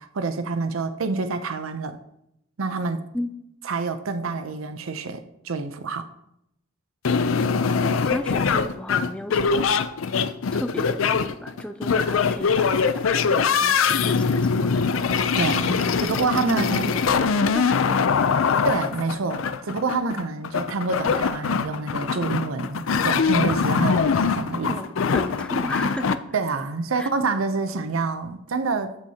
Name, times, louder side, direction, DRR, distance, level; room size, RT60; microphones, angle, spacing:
voice 1, 0.0-2.0 2.6-3.0 3.6-6.1 15.4-17.3 18.6-24.7 26.3-29.0, right 4 dB, 90° right, 0.6 m, -27 dB
sound 1, 7.0-26.1, left 5 dB, 80° left, 0.5 m, -23 dB
voice 2, 7.8-9.8 10.5-14.8 15.8-18.0 24.7-26.2 26.9-27.1, left 1 dB, 5° left, 0.4 m, -34 dB
13.0 x 6.2 x 2.8 m
head